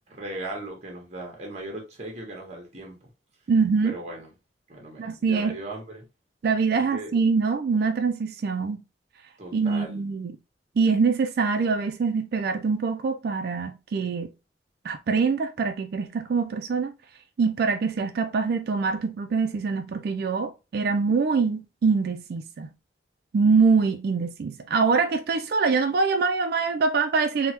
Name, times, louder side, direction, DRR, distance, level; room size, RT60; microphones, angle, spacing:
voice 1, 0.1-3.0 3.8-4.3 4.7-6.1 6.9-7.1 9.4-10.0, right 1 dB, 40° right, 1.0 m, -37 dB
voice 2, 3.5-3.9 5.0-5.6 6.4-8.8 9.5-10.4 10.8-14.3 14.8-16.9 17.4-22.7 23.3-27.5, right 4 dB, 60° right, 0.4 m, -24 dB
3.4 x 2.0 x 2.9 m
head